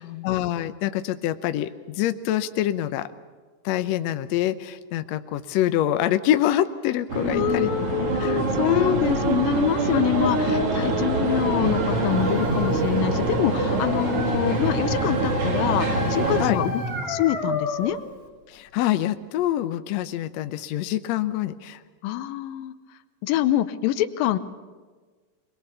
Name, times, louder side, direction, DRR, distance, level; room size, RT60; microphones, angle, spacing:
voice 1, 0.0-3.1 3.6-7.7 8.2-9.3 9.9-10.3 16.4-16.6 18.5-21.8, left 12 dB, 75° left, 11 dB, 1.7 m, -26 dB
sound 1, 7.1-16.5, right 3 dB, 45° right, 2.8 m, -24 dB
voice 2, 7.3-18.0 22.0-22.7 23.2-24.4, left 13 dB, 90° left, 12 dB, 2.6 m, -25 dB
Breathing, 10.7-10.8 11.6-13.1 15.6-17.0, right 1 dB, 65° right, 7.2 m, -33 dB
Dog, 13.0-18.1, left 3 dB, 10° left, 3.1 m, -32 dB
24.0 x 21.5 x 7.0 m, 1.4 s
omnidirectional pair, 3.9 m